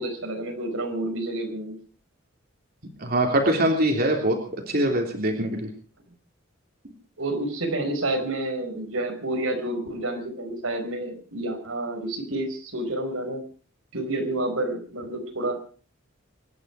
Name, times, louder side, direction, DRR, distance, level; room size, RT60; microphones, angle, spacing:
voice 1, 0.0-1.8 7.2-13.4 13.9-15.6, right 1 dB, 85° right, 4 dB, 5.0 m, -29 dB
voice 2, 3.0-5.7, right 1 dB, 45° right, 2 dB, 3.3 m, -23 dB
25.5 x 11.5 x 4.9 m, 0.40 s
head